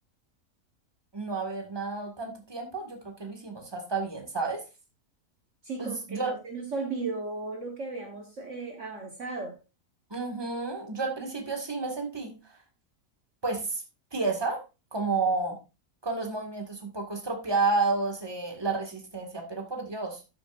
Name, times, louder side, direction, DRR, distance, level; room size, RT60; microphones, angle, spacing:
voice 1, 1.1-4.6 5.8-6.3 10.1-12.3 13.4-13.8 14.1-14.6 14.9-15.6 16.0-20.2, right 3 dB, 15° right, 3 dB, 1.9 m, -31 dB
voice 2, 5.6-9.6, right 3 dB, 50° right, 2 dB, 1.6 m, -35 dB
12.5 x 6.9 x 2.6 m, 0.28 s
omnidirectional pair, 1.7 m